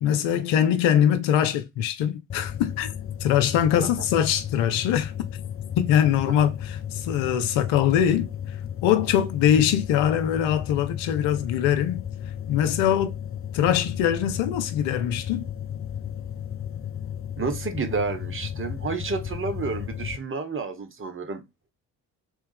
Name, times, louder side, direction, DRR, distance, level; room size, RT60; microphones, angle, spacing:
voice 1, 0.0-2.9 3.2-5.1 5.8-8.3 8.8-12.0 12.5-13.1 13.5-15.5, left 10 dB, 65° left, 0.8 m, -22 dB
sound 1, 2.3-20.2, left 9 dB, 30° left, 0.5 m, -34 dB
voice 2, 17.4-21.4, right 4 dB, 25° right, 1.0 m, -30 dB
3.4 x 3.1 x 3.3 m
figure-of-eight pair, 45°, 49 cm